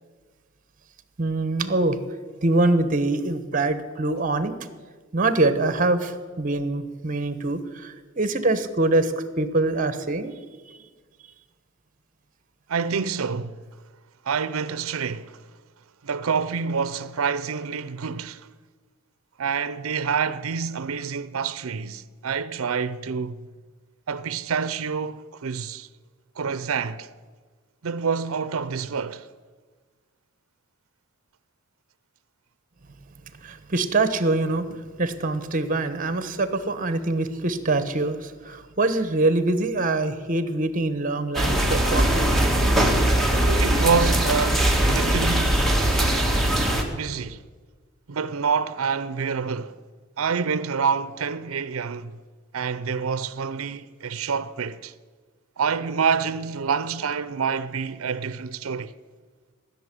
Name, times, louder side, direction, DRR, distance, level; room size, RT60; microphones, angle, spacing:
voice 1, 1.2-2.0 2.4-4.6 5.1-10.3 33.4-42.3, right 2 dB, 40° right, 1.1 m, -24 dB
voice 2, 12.7-13.6 14.3-15.4 16.0-18.5 19.4-23.5 24.1-25.9 26.4-27.1 27.8-29.3 43.4-45.6 46.8-47.4 48.1-49.8 50.2-52.2 52.5-54.9 55.6-58.9, right 6 dB, 85° right, 0.6 m, -27 dB
sound 1, 41.3-46.8, right 1 dB, ahead, 1.6 m, -21 dB
16.0 x 6.9 x 9.9 m
head